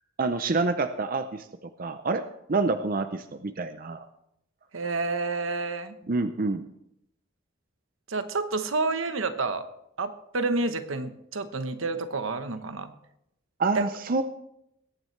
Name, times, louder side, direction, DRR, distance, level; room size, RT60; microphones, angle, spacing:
voice 1, 0.2-1.4 1.8-2.2 2.5-4.1 6.1-6.6 13.6-14.2, right 3 dB, 45° right, 9 dB, 0.6 m, -27 dB
voice 2, 4.7-5.9 8.1-9.6 10.0-12.9 13.7-13.8, right 3 dB, 80° right, 9 dB, 1.1 m, -29 dB
21.5 x 9.3 x 3.2 m, 0.78 s
head